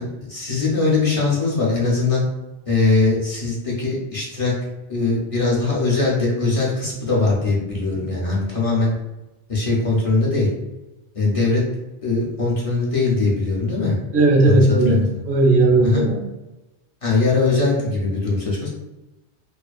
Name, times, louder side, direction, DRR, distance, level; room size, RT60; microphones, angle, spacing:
voice 1, 0.0-2.2 2.7-4.5 4.9-8.9 9.5-10.5 11.1-11.6 12.0-14.0 14.4-15.1 15.8-16.0 17.0-18.7, left 3 dB, 40° left, -5 dB, 0.5 m, -21 dB
voice 2, 14.1-16.2, right 2 dB, 55° right, -2 dB, 0.7 m, -16 dB
2.4 x 2.3 x 2.3 m, 1.0 s
omnidirectional pair, 1.1 m